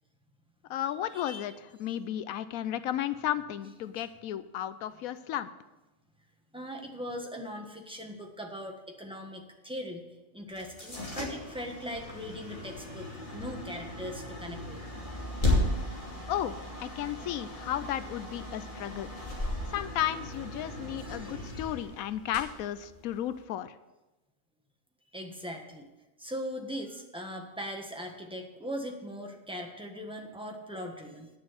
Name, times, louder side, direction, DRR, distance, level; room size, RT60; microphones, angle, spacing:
voice 1, 0.7-1.5 1.8-5.5 16.3-19.1 19.7-23.7, left 11 dB, 90° left, 13 dB, 1.0 m, -34 dB
voice 2, 6.5-10.1 10.3-14.8 19.6-19.7 21.0-21.7 25.1-25.9 26.2-31.3, equal, 5° right, 1 dB, 1.3 m, -40 dB
sound 1, 10.5-23.4, left 1 dB, 35° left, 2.8 m, -35 dB
9.7 x 6.9 x 7.8 m, 1.1 s
omnidirectional pair, 1.4 m